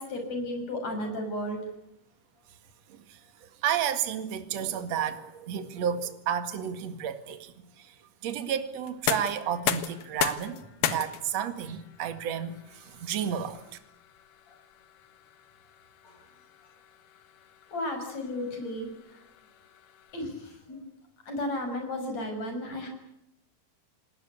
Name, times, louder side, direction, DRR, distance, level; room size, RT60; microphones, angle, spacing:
voice 1, 0.0-1.6 16.0-16.1 17.7-18.9 20.1-20.8 21.3-22.9, left 1 dB, 45° left, 7.4 m, -33 dB
voice 2, 3.6-7.9 8.2-13.6, right 9 dB, 50° right, 2.6 m, -32 dB
sound 1, 8.8-20.6, left 10 dB, 65° left, 2.8 m, -37 dB
28.0 x 20.0 x 8.3 m
omnidirectional pair, 4.5 m